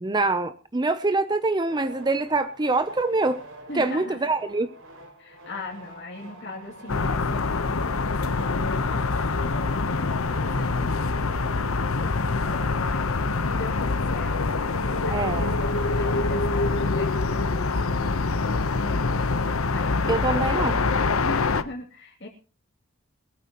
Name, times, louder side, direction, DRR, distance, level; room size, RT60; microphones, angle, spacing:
voice 1, 0.0-3.4 3.7-4.7 15.1-15.5 20.1-20.8, right 2 dB, 20° right, 11 dB, 0.6 m, -24 dB
sound 1, 1.7-16.7, right 1 dB, 75° right, 5.7 m, -47 dB
voice 2, 3.7-4.2 5.2-11.4 12.1-14.4 15.0-19.2 19.7-20.8 21.2-22.3, left 2 dB, 55° left, -2 dB, 2.6 m, -39 dB
sound 2, 6.9-21.6, left 3 dB, 85° left, 1.0 m, -25 dB
21.0 x 13.5 x 3.0 m, 0.35 s
head